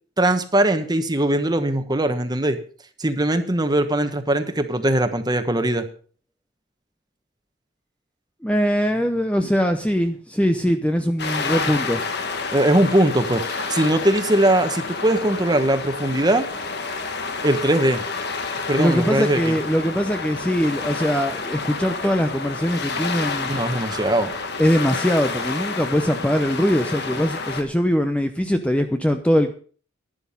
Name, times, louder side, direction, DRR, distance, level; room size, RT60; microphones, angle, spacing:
voice 1, 0.2-2.6 3.0-5.9 12.5-16.5 17.4-18.0 18.7-19.6 23.5-24.3, right 1 dB, 20° right, 8 dB, 1.2 m, -20 dB
voice 2, 8.4-12.0 18.8-23.5 24.6-29.5, equal, 5° left, 7 dB, 0.7 m, -21 dB
sound 1, 11.2-27.6, left 4 dB, 55° left, 1.5 m, -29 dB
11.5 x 10.5 x 5.4 m, 0.42 s
head